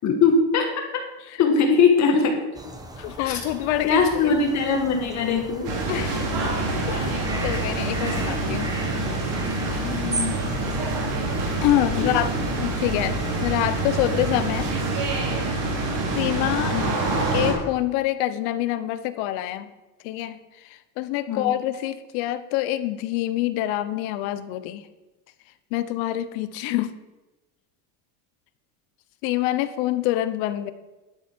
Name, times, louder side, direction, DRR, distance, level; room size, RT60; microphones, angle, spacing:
voice 1, 0.0-0.7 1.4-2.4 3.2-3.4 3.8-5.8 9.8-10.3 12.0-12.1 16.7-16.9 21.3-21.5, left 5 dB, 35° left, 3 dB, 1.4 m, -21 dB
sound 1, 2.5-15.2, right 2 dB, 10° right, 0.9 m, -37 dB
voice 2, 2.9-4.3 5.9-6.4 6.9-8.7 11.6-12.3 12.6-14.7 16.1-16.8 17.3-19.7 20.0-24.9 25.7-26.9 29.2-30.7, left 14 dB, 60° left, 13 dB, 0.9 m, -26 dB
sound 2, 5.6-17.5, right 2 dB, 45° right, 3.7 m, -26 dB
11.5 x 8.0 x 4.5 m, 1.1 s
supercardioid pair, 145°, 48 cm